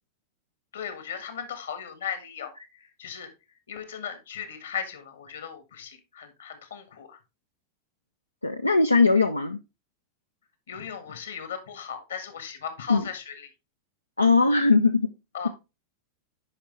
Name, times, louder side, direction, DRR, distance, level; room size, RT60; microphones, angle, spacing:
voice 1, 0.7-3.3 3.7-7.2 10.7-13.5 15.3-15.5, left 7 dB, 65° left, 10 dB, 1.6 m, -37 dB
voice 2, 8.4-9.6 12.9-13.0 14.2-15.0, left 3 dB, 85° left, 7 dB, 0.5 m, -20 dB
9.9 x 5.2 x 3.3 m, 0.26 s
figure-of-eight pair, 90°, 0 cm